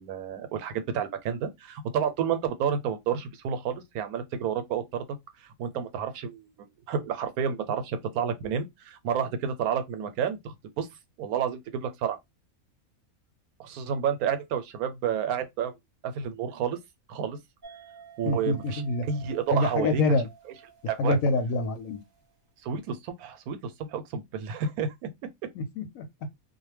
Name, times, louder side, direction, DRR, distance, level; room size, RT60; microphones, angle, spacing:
voice 1, 0.0-10.9 11.2-12.2 13.6-15.7 16.0-16.8 17.1-17.4 18.2-20.2 20.9-21.2 22.6-25.1, right 7 dB, 85° right, 1.1 m, -30 dB
sound 1, 17.6-22.4, right 6 dB, 35° right, 0.8 m, -51 dB
voice 2, 18.3-19.1 19.5-20.3 21.0-22.0 25.6-26.1, left 2 dB, 75° left, 0.9 m, -26 dB
2.4 x 2.1 x 3.1 m
omnidirectional pair, 1.5 m